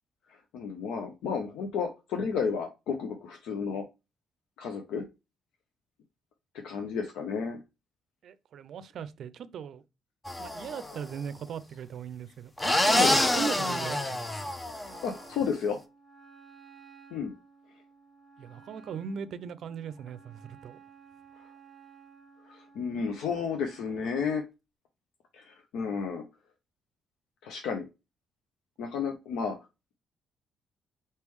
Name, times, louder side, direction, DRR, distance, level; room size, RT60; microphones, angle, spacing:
voice 1, 0.5-3.8 4.6-5.0 6.6-7.6 12.9-13.1 14.8-15.8 17.1-17.3 22.5-24.4 25.3-26.2 27.4-27.9 28.8-29.6, left 6 dB, 85° left, 0.7 m, -32 dB
voice 2, 8.2-9.8 10.4-14.5 18.4-20.8, right 7 dB, 65° right, 0.4 m, -39 dB
sound 1, 10.3-11.0 12.6-15.2, left 1 dB, 15° left, 0.6 m, -27 dB
Wind instrument woodwind instrument, 14.8-24.4, right 5 dB, 15° right, 1.1 m, -55 dB
4.3 x 3.5 x 3.1 m
cardioid pair, 90°, 0 cm